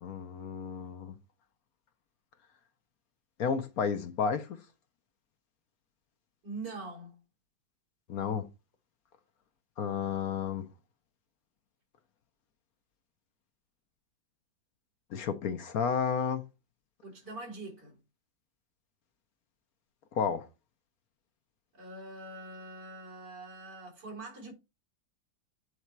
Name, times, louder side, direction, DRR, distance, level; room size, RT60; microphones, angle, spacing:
voice 1, 0.0-1.1 3.4-4.6 8.1-8.4 9.8-10.7 15.1-16.4 20.1-20.5, left 6 dB, 60° left, 1.2 m, -31 dB
voice 2, 6.4-7.2 17.0-18.0 21.7-24.5, right 2 dB, 75° right, 4.2 m, -43 dB
8.2 x 4.2 x 4.6 m
omnidirectional pair, 1.9 m